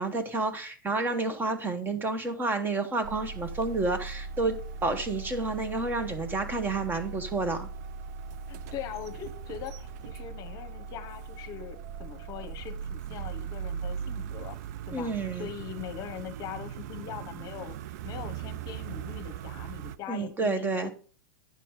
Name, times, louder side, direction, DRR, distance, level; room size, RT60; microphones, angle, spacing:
voice 1, 0.0-4.6 4.8-7.7 14.9-15.5 20.1-20.9, right 3 dB, 20° right, 8 dB, 1.2 m, -30 dB
sound 1, 3.0-20.0, right 6 dB, 50° right, 0.5 m, -39 dB
voice 2, 8.5-14.6 14.9-17.8 18.0-20.9, left 10 dB, 35° left, 9 dB, 1.0 m, -41 dB
9.3 x 5.8 x 4.8 m, 0.38 s
figure-of-eight pair, 95°, 11 cm